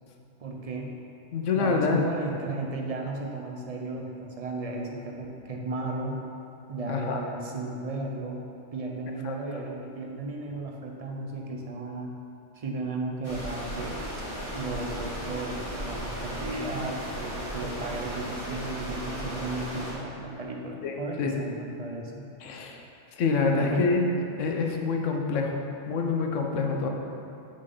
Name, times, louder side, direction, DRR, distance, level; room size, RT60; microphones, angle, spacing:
voice 1, 0.4-0.9 1.5-6.2 6.7-8.4 8.7-12.1 12.5-14.0 14.5-22.3 23.5-23.9, right 2 dB, 40° right, 0 dB, 0.6 m, -35 dB
voice 2, 1.3-2.0 6.9-7.2 9.2-9.4 20.8-20.9 21.2-21.3 22.4-22.8 23.2-24.0 24.4-25.6 25.9-26.9, left 4 dB, 85° left, 2 dB, 1.1 m, -26 dB
sound 1, 13.2-19.9, equal, 30° left, 1.8 m, -35 dB
6.5 x 4.2 x 5.3 m, 2.7 s
omnidirectional pair, 1.2 m